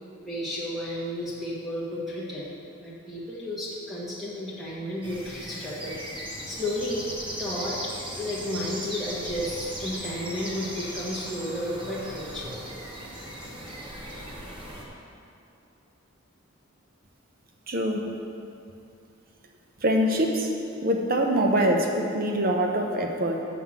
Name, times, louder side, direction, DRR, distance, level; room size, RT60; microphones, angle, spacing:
voice 1, 0.2-2.5 2.8-7.1 7.4-12.6, left 1 dB, ahead, -8 dB, 1.3 m, -33 dB
sound 1, 5.0-14.8, equal, 25° right, 1.0 m, -38 dB
voice 2, 17.7-18.0 19.8-20.5 20.8-23.4, equal, 45° right, 2 dB, 0.8 m, -24 dB
6.4 x 5.7 x 7.2 m, 2.6 s
head